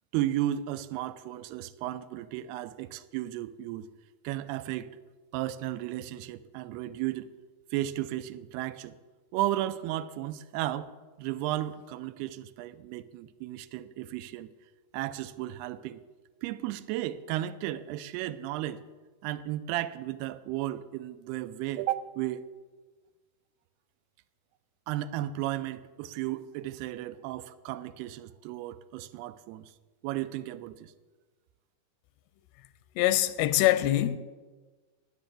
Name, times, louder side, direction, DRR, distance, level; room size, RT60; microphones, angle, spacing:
voice 1, 0.1-3.9 4.2-4.9 5.3-7.3 7.7-8.9 9.3-10.9 11.2-14.5 14.9-16.0 16.4-18.8 19.2-22.4 24.9-29.6 30.0-30.9, right 14 dB, 85° right, 2.6 m, -34 dB
voice 2, 33.0-34.2, left 14 dB, 90° left, 2.7 m, -24 dB
10.5 x 10.0 x 8.7 m
omnidirectional pair, 4.6 m